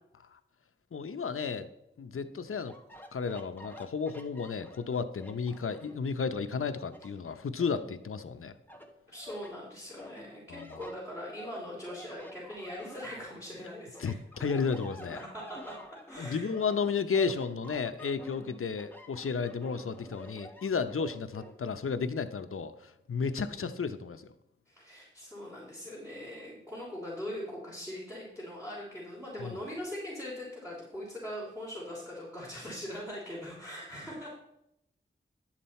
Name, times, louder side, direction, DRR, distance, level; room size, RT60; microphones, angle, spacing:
voice 1, 0.9-1.7 2.0-2.7 3.1-8.5 10.5-10.9 14.0-15.2 16.2-24.3 29.4-29.6, left 5 dB, 85° left, 10 dB, 0.8 m, -33 dB
sound 1, 2.6-6.1 6.5-8.3 8.7-9.5 10.0-13.6 13.9-21.5, equal, 10° left, 1.3 m, -49 dB
voice 2, 9.1-14.2 15.1-15.8 16.1-16.5 23.4-23.7 24.7-34.3, equal, 10° right, -7 dB, 3.3 m, -41 dB
11.0 x 7.5 x 4.3 m, 0.79 s
wide cardioid pair, 75°, 21 cm